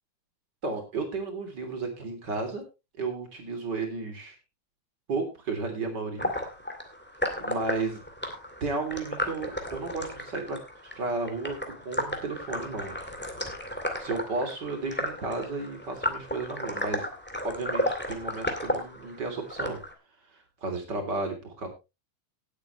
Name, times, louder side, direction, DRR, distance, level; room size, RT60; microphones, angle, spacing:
voice 1, 0.6-2.6 3.0-4.3 5.1-6.3 7.4-8.0 8.6-10.6 10.9-13.1 14.0-17.1 17.4-19.8 20.6-21.7, right 3 dB, 35° right, 4 dB, 3.5 m, -33 dB
Hydrophone on waterfall, 6.2-19.9, left 1 dB, 5° left, 1.5 m, -34 dB
18.5 x 8.3 x 3.2 m, 0.27 s
omnidirectional pair, 3.6 m